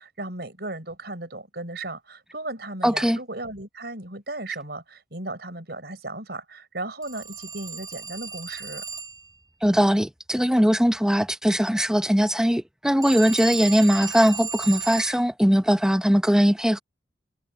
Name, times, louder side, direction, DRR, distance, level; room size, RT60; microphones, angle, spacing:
voice 1, 0.0-8.8, right 2 dB, 60° right, 6.3 m, -36 dB
voice 2, 2.8-3.2 9.6-16.8, equal, 5° right, 0.9 m, -20 dB
Telephone, 7.0-9.3 13.0-15.2, right 6 dB, 20° right, 8.0 m, -35 dB
head